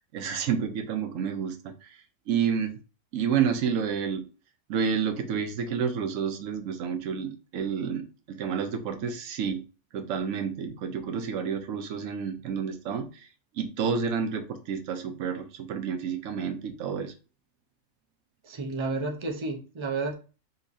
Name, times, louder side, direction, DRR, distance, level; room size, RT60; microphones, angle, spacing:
voice 1, 0.1-1.9 2.3-2.8 3.1-4.2 4.7-8.0 8.3-9.6 9.9-13.3 13.6-17.1, right 7 dB, 70° right, 7 dB, 1.0 m, -29 dB
voice 2, 18.4-20.2, right 3 dB, 35° right, 2 dB, 0.5 m, -31 dB
5.3 x 2.9 x 2.6 m, 0.34 s
omnidirectional pair, 1.4 m